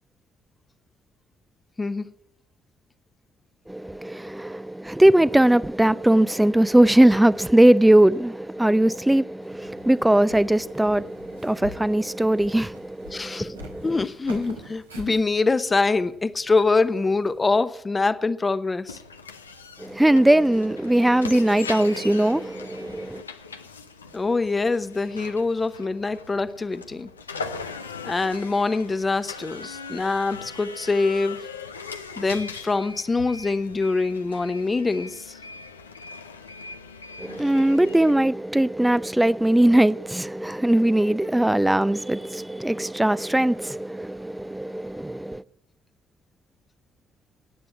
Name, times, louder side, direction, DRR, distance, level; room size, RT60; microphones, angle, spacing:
voice 1, 1.8-2.1 13.1-13.5 13.8-19.0 24.1-27.1 28.0-31.4 32.2-35.4, left 3 dB, 30° left, 1.0 m, -24 dB
voice 2, 3.7-14.0 19.8-23.2 37.2-45.4, right 1 dB, 10° right, 0.6 m, -20 dB
Walk footsteps, 9.4-17.6, equal, 90° right, 1.5 m, -46 dB
sound 1, 18.9-38.1, left 4 dB, 90° left, 0.6 m, -40 dB
15.0 x 9.3 x 10.0 m
figure-of-eight pair, 45°, 0 cm